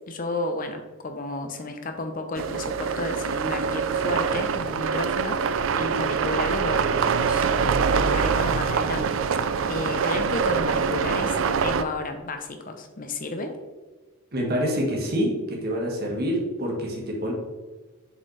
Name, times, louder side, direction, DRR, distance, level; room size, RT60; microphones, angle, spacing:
voice 1, 0.0-13.5, left 2 dB, 40° left, 6 dB, 0.7 m, -32 dB
sound 1, 2.3-11.8, right 6 dB, 65° right, 0.4 m, -24 dB
voice 2, 14.3-17.3, equal, 45° right, -1 dB, 1.6 m, -26 dB
7.1 x 5.0 x 3.3 m, 1.3 s
head